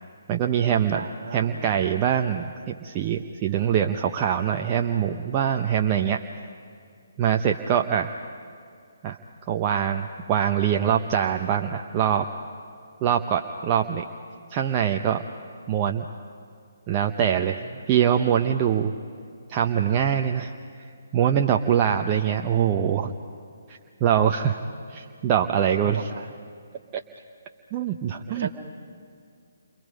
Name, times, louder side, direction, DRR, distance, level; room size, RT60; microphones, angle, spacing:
voice 1, 0.3-1.0 1.3-6.2 7.2-8.1 9.0-9.2 9.5-12.3 13.0-14.0 14.5-15.2 15.7-16.0 16.9-17.6 17.9-18.9 19.5-20.5 21.1-23.1 23.7-24.6 24.9-26.1 27.7-28.5, right 9 dB, 30° right, 3 dB, 0.9 m, -23 dB
voice 2, 0.9-1.8 17.7-18.2 25.8-26.3 28.3-28.5, right 5 dB, 60° right, 7 dB, 2.2 m, -37 dB
29.5 x 25.0 x 5.3 m, 2.3 s
figure-of-eight pair, 140°, 0 cm